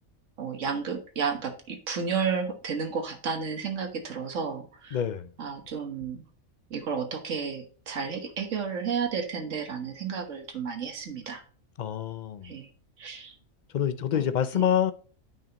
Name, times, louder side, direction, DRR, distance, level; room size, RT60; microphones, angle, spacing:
voice 1, 0.4-5.0 5.4-6.2 6.7-11.4 12.4-12.7 13.0-13.3 14.1-14.2 14.5-14.6, right 6 dB, 70° right, 1.6 m, -32 dB
voice 2, 4.9-5.3 11.8-12.5 13.7-14.9, left 9 dB, 60° left, 0.4 m, -26 dB
9.1 x 5.7 x 2.9 m
omnidirectional pair, 1.4 m